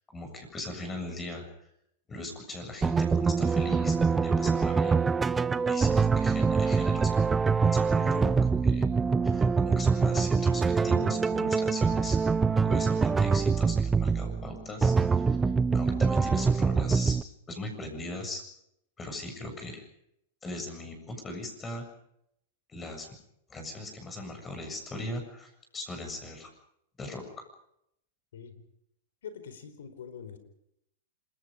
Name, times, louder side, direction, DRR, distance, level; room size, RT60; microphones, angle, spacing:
voice 1, 0.1-1.5 2.1-5.0 5.7-8.9 9.2-12.2 12.6-15.4 15.7-17.2 17.5-18.4 19.0-19.9 20.4-21.9 22.7-23.1 23.5-26.5 27.0-27.5, left 1 dB, 15° left, 4 dB, 7.4 m, -39 dB
sound 1, 2.8-17.2, right 5 dB, 15° right, 0.8 m, -25 dB
voice 2, 28.3-28.6 29.2-30.4, left 7 dB, 80° left, 11 dB, 4.6 m, -44 dB
27.0 x 22.0 x 5.2 m, 0.75 s
hypercardioid pair, 130°, 0 cm